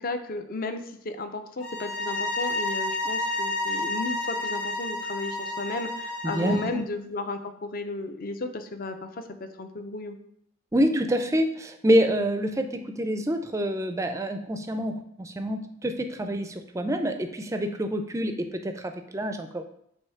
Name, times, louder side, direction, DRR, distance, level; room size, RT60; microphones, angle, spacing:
voice 1, 0.0-9.2 9.6-10.2, left 2 dB, 45° left, 8 dB, 0.5 m, -34 dB
sound 1, 1.6-6.7, left 2 dB, 60° left, 2.0 m, -30 dB
voice 2, 6.2-6.8 10.7-19.6, equal, 15° right, 7 dB, 0.4 m, -27 dB
6.5 x 2.7 x 5.7 m, 0.73 s
head